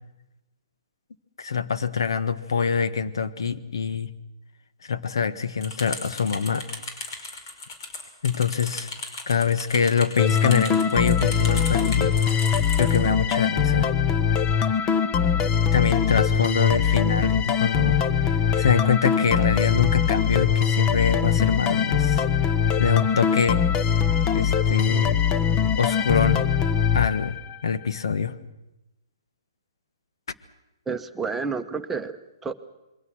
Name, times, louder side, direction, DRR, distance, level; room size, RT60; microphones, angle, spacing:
voice 1, 1.4-4.1 4.9-6.6 8.2-8.9 9.3-13.9 15.7-22.2 22.8-23.6 24.3-25.2 25.7-26.4 26.9-27.4 27.6-28.3, left 6 dB, 70° left, 12 dB, 1.4 m, -25 dB
sound 1, 5.6-13.0, left 3 dB, 50° left, 5.4 m, -36 dB
sound 2, 10.2-27.7, left 7 dB, 25° left, 1.1 m, -22 dB
voice 2, 30.9-32.5, right 5 dB, 10° right, 6 dB, 1.1 m, -30 dB
27.0 x 22.5 x 6.3 m, 0.96 s
hypercardioid pair, 135°, 2 cm